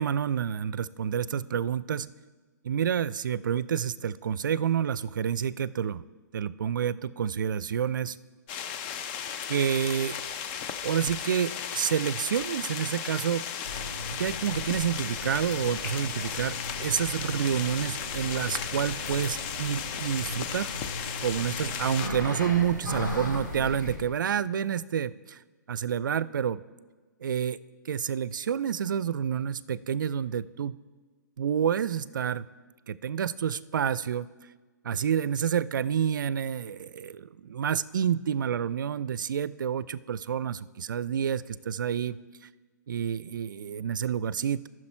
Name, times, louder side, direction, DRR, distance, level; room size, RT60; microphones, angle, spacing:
voice 1, 0.0-2.1 2.6-6.0 6.3-8.2 9.5-10.2 10.8-13.5 14.1-20.7 21.2-25.4 25.7-26.6 27.2-27.6 27.9-30.8 31.4-32.5 32.9-34.3 34.8-42.2 42.9-44.7, right 8 dB, 80° right, 18 dB, 0.4 m, -29 dB
sound 1, 8.5-22.1, left 8 dB, 35° left, 0.6 m, -35 dB
sound 2, 13.6-24.0, left 1 dB, 90° left, 2.6 m, -38 dB
13.5 x 6.3 x 4.4 m, 1.4 s
hypercardioid pair, 140°, 10 cm